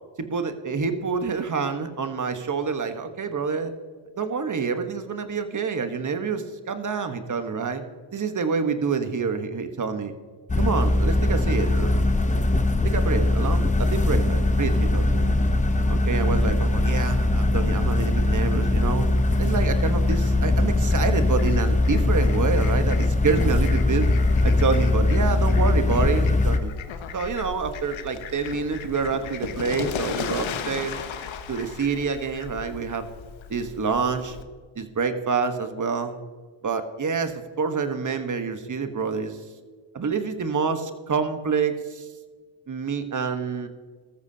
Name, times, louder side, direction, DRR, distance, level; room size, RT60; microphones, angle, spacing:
voice 1, 0.2-3.7 4.2-7.8 8.1-10.1 10.6-12.0 12.3-12.4 12.8-15.4 15.9-19.0 19.4-24.1 24.4-26.7 27.1-31.0 31.5-33.0 33.5-34.4 34.7-36.2 36.6-39.4 39.9-42.1 42.7-43.7, right 5 dB, 40° right, 8 dB, 1.2 m, -27 dB
sound 1, 10.5-26.6, left 2 dB, 15° left, 0.8 m, -21 dB
Fowl, 18.1-34.4, left 7 dB, 75° left, 1.0 m, -37 dB
14.0 x 13.5 x 2.8 m, 1.5 s
cardioid pair, 75°, 46 cm